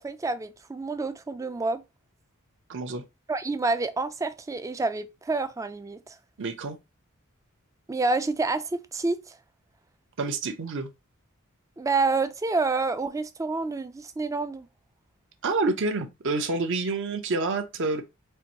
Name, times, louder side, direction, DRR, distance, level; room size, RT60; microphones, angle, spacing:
voice 1, 0.0-1.8 3.3-6.2 7.9-9.3 11.8-14.7, right 3 dB, 15° right, 0.3 m, -28 dB
voice 2, 2.7-3.0 6.4-6.8 10.2-10.9 15.4-18.0, right 3 dB, 60° right, 0.7 m, -28 dB
4.5 x 2.6 x 2.8 m
head